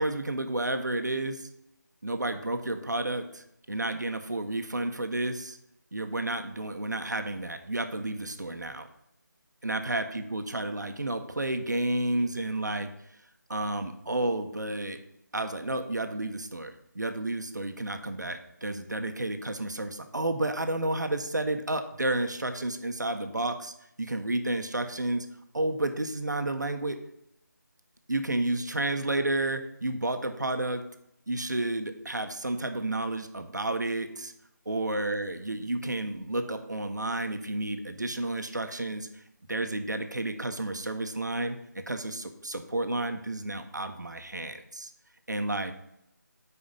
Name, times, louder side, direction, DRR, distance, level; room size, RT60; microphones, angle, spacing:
voice 1, 0.0-1.5 2.0-5.6 5.9-8.9 9.6-12.9 13.5-15.0 15.3-23.7 24.0-25.3 25.5-27.0 28.1-30.8 31.3-34.3 34.7-39.1 39.5-41.6 41.9-44.9 45.3-45.7, right 2 dB, 65° right, 7 dB, 1.0 m, -31 dB
8.6 x 4.9 x 5.3 m, 0.80 s
figure-of-eight pair, 160°, 10 cm